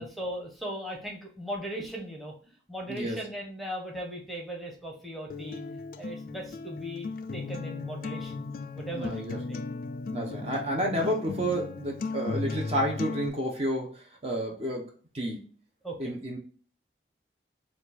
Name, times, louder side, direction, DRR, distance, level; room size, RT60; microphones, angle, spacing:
voice 1, 0.0-5.6 6.0-9.6 15.8-16.1, equal, ahead, -1 dB, 0.9 m, -38 dB
Acoustic guitar, 5.3-13.3, left 4 dB, 50° left, 0.3 m, -36 dB
voice 2, 8.9-9.4 10.1-15.5 16.0-16.4, right 1 dB, 35° right, 0 dB, 0.8 m, -31 dB
4.4 x 2.4 x 4.0 m, 0.41 s
head